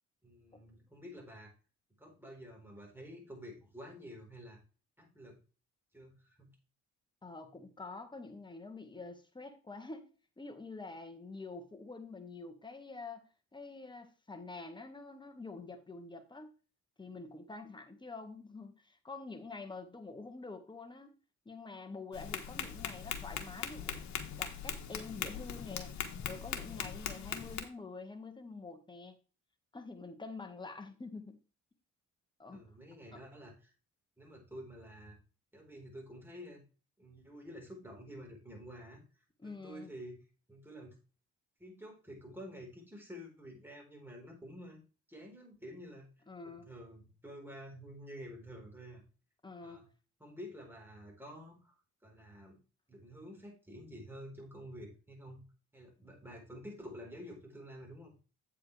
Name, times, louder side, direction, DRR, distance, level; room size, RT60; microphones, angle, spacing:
voice 1, 0.2-1.5 2.0-4.6 5.0-5.4 5.9-6.5 32.5-33.7 34.2-35.1 35.5-36.6 37.0-39.0 39.4-40.2 40.5-41.0 41.6-44.8 45.1-46.1 46.4-49.0 49.6-49.9 50.2-51.7 52.0-52.6 52.9-55.4 55.7-58.2, equal, 5° right, 4.3 m, -49 dB
voice 2, 7.2-10.1 10.4-16.5 17.0-21.2 21.4-24.1 24.4-25.9 26.2-29.2 29.7-31.4 32.4-32.6 33.1-33.2 39.4-39.9 46.3-46.7 49.4-49.8, left 3 dB, 15° left, 1.6 m, -47 dB
Tap, 22.1-27.6, left 8 dB, 65° left, 1.4 m, -40 dB
8.4 x 7.7 x 3.3 m
cardioid pair, 90°, 30 cm